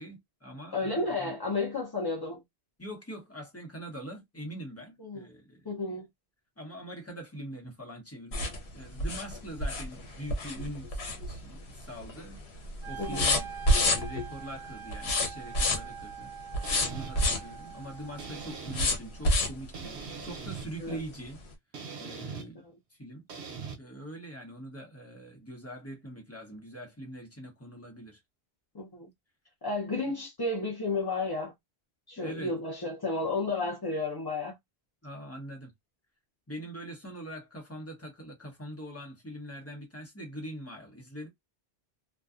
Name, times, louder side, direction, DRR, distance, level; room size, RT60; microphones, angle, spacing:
voice 1, 0.0-1.6 2.8-5.7 6.6-16.3 16.9-21.4 22.0-22.6 22.9-23.2 23.8-28.2 32.2-32.5 35.0-35.7 36.5-41.3, right 1 dB, 15° left, 0.9 m, -43 dB
voice 2, 0.7-2.4 5.0-5.3 5.6-6.1 13.0-13.3 20.8-21.0 22.6-22.7 28.7-29.1 29.6-31.5 32.1-34.5, left 3 dB, 30° left, 0.5 m, -32 dB
sound 1, 8.3-11.7 12.0-12.4 12.6-14.3 14.9-16.0 16.5-17.5 18.7-19.7 20.2-20.3 20.7-20.8, left 1 dB, 80° left, 1.0 m, -28 dB
Wind instrument woodwind instrument, 12.8-18.9, right 8 dB, 45° right, 0.9 m, -44 dB
sound 2, 16.6-17.1 18.2-18.9 19.7-20.7 21.7-22.5 23.3-23.8, right 6 dB, 80° right, 0.9 m, -40 dB
2.5 x 2.3 x 2.4 m
omnidirectional pair, 1.1 m